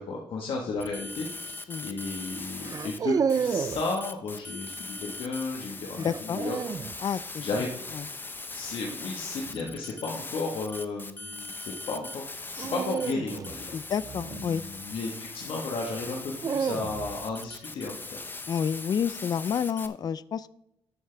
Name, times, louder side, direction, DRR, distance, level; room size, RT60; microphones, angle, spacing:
voice 1, 0.0-6.6 6.9-7.0 7.4-7.7 8.5-13.9 14.3-18.2, left 3 dB, 65° left, -1 dB, 1.5 m, -34 dB
sound 1, 0.8-3.0 3.3-19.9, left 3 dB, 20° left, 0.8 m, -40 dB
sound 2, 0.8-1.1 2.6-3.9 6.0-7.0 9.4-9.8 12.6-15.0 16.0-17.3, right 6 dB, 40° right, 0.4 m, -31 dB
voice 2, 6.0-6.4 7.0-7.7 7.9-8.1 13.7-14.6 18.5-20.5, left 7 dB, 45° left, 17 dB, 0.4 m, -30 dB
12.5 x 7.9 x 3.4 m, 0.82 s
cardioid pair, 95°, 10 cm